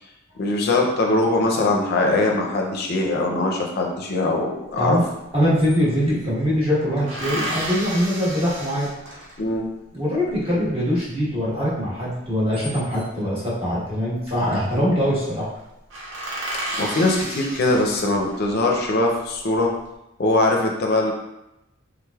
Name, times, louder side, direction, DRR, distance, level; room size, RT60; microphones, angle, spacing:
voice 1, 0.4-5.0 9.4-9.7 16.8-19.7 20.2-21.1, left 2 dB, 50° left, 1 dB, 0.4 m, -21 dB
sound 1, 4.9-5.0 5.3-6.3 7.1-9.6 12.2-13.2 14.4-14.8 15.1-15.2 15.5-15.6 15.9-18.5 19.0-19.7, right 1 dB, 60° right, 0.6 m, -32 dB
voice 2, 5.3-8.9 9.9-15.5, equal, 30° right, -8 dB, 1.2 m, -22 dB
3.5 x 3.2 x 2.2 m, 0.91 s
head